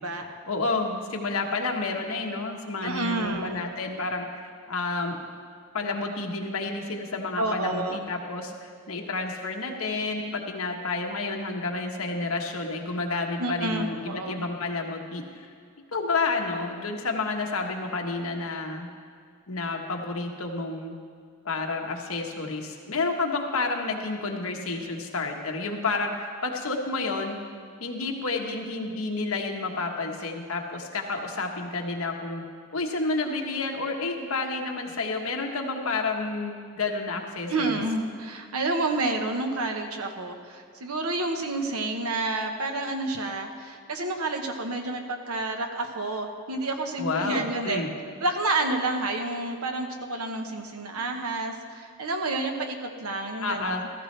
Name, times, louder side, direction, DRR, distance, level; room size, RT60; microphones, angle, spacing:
voice 1, 0.5-5.2 5.7-15.5 15.9-18.9 19.5-21.0 21.4-27.4 27.8-32.4 32.7-37.8 47.0-47.9 53.4-53.8, left 3 dB, 75° left, 2 dB, 1.3 m, -30 dB
voice 2, 2.8-3.6 7.4-8.1 13.4-14.5 37.5-47.8 48.2-53.8, right 2 dB, 80° right, 4 dB, 1.2 m, -29 dB
15.0 x 14.0 x 3.3 m, 2.2 s
head